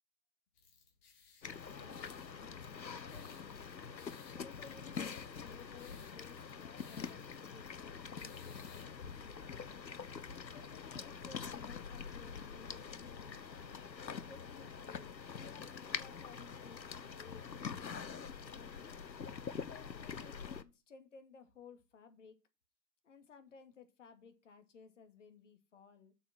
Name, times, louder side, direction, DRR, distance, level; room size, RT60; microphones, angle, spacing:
sound 1, 0.5-8.8, left 5 dB, 25° left, 3.2 m, -63 dB
sound 2, 1.4-20.6, left 6 dB, 85° left, 1.2 m, -45 dB
voice 1, 1.8-2.7 3.1-3.5 4.0-9.9 10.5-13.9 14.3-19.0 19.7-22.4 23.0-26.1, left 5 dB, 45° left, 2.3 m, -58 dB
7.0 x 7.0 x 7.6 m
figure-of-eight pair, 145°, 50 cm